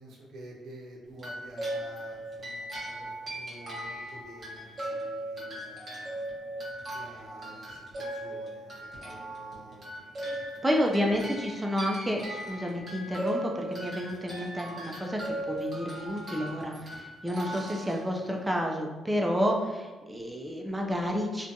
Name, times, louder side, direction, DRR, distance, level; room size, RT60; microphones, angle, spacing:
voice 1, 0.0-6.2 6.9-10.4 11.2-11.3, right 1 dB, 70° right, -1 dB, 0.6 m, -49 dB
sound 1, 1.2-18.6, right 1 dB, 45° right, 1.0 m, -38 dB
voice 2, 10.6-15.2 15.5-21.5, equal, 10° right, 0 dB, 0.3 m, -30 dB
2.5 x 2.2 x 2.6 m, 1.2 s
cardioid pair, 90°, 0 cm